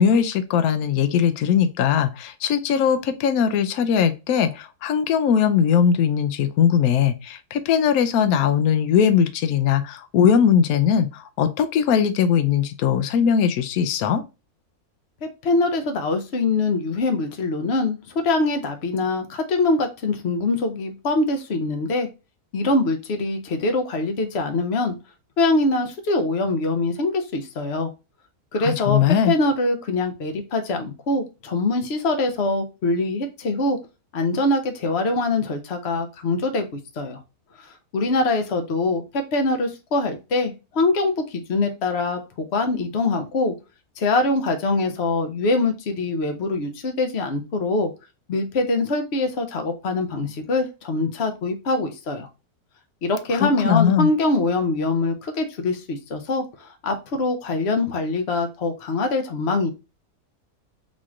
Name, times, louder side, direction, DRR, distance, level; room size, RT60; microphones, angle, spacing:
voice 1, 0.0-14.2 28.6-29.4 53.4-54.1, left 8 dB, 75° left, 1.0 m, -20 dB
voice 2, 15.2-22.1 22.5-25.0 25.4-27.9 28.5-33.8 34.1-37.2 37.6-43.5 44.0-47.9 48.3-52.3 53.0-59.7, left 2 dB, 50° left, 1.0 m, -23 dB
4.2 x 3.1 x 3.5 m
omnidirectional pair, 1.6 m